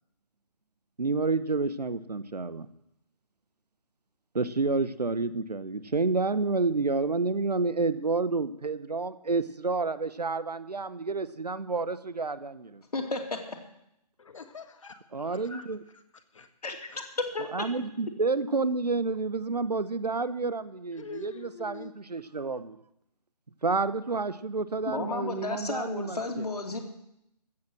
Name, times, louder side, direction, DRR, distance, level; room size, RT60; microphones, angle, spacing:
voice 1, 1.0-2.7 4.3-12.8 15.1-15.8 17.5-22.8 23.6-26.4, right 3 dB, 75° right, 15 dB, 1.0 m, -29 dB
voice 2, 12.9-13.4 16.6-16.8 17.3-17.4 24.9-26.8, left 3 dB, 70° left, 3 dB, 2.7 m, -32 dB
voice 3, 14.2-15.7 15.9-16.5 16.9-17.1 20.9-21.9, left 5 dB, 50° left, 8 dB, 1.6 m, -46 dB
14.5 x 7.7 x 7.7 m, 0.81 s
figure-of-eight pair, 145°, 21 cm